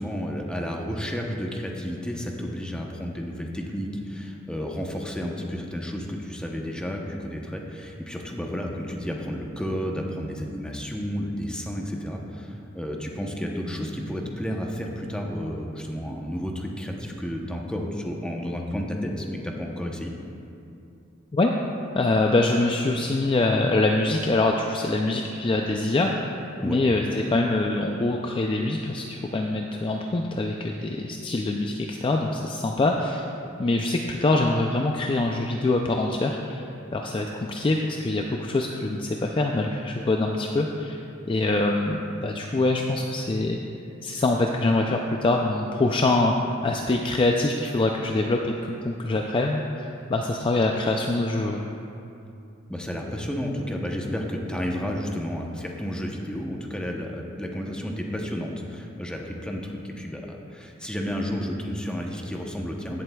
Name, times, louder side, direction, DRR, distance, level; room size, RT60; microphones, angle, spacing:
voice 1, 0.0-20.1 26.6-26.8 52.7-63.0, equal, 5° left, 0 dB, 0.8 m, -31 dB
voice 2, 21.9-26.4 26.6-33.3 33.6-36.6 36.9-41.0 41.3-43.6 44.0-46.4 46.6-51.7, left 2 dB, 25° left, 1 dB, 0.4 m, -24 dB
16.0 x 7.7 x 2.3 m, 2.6 s
head